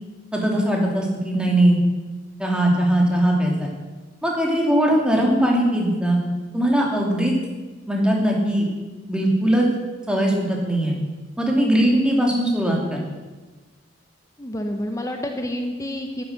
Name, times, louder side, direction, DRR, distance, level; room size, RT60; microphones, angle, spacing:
voice 1, 0.3-1.8 2.4-3.7 4.2-6.2 6.5-7.3 7.9-8.7 9.1-9.7 10.1-10.9 11.4-13.0, right 1 dB, 5° right, -1 dB, 2.6 m, -20 dB
voice 2, 14.4-16.2, left 1 dB, 20° left, 4 dB, 0.9 m, -28 dB
12.5 x 9.9 x 6.6 m, 1.3 s
head